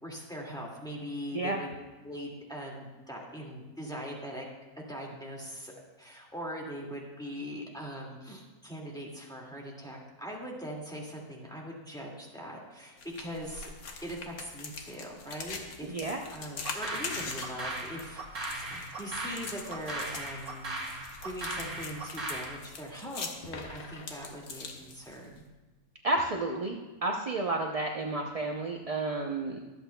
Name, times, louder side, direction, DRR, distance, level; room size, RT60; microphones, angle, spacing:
voice 1, 0.0-1.7 2.0-4.4 4.8-5.7 6.0-13.7 14.0-25.4, equal, 5° left, -3 dB, 2.0 m, -41 dB
sound 1, 13.0-25.4, left 4 dB, 75° left, 1.5 m, -43 dB
voice 2, 15.8-16.2 26.0-26.8 27.0-29.6, right 2 dB, 40° right, 1 dB, 0.5 m, -31 dB
sound 2, 16.6-22.6, right 2 dB, 75° right, 2.2 m, -38 dB
24.0 x 8.1 x 2.3 m, 1.2 s
omnidirectional pair, 1.6 m